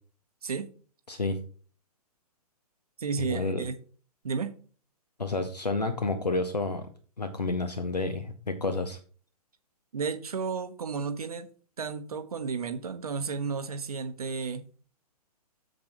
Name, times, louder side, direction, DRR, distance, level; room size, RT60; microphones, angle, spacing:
voice 1, 1.1-1.4 3.2-3.6 5.2-6.9 7.2-9.0, left 3 dB, 80° left, 8 dB, 1.0 m, -30 dB
voice 2, 3.0-3.7 4.2-4.5 9.9-11.5 11.8-14.7, right 5 dB, 65° right, 9 dB, 0.9 m, -32 dB
9.1 x 7.2 x 3.0 m, 0.42 s
figure-of-eight pair, 120°, 20 cm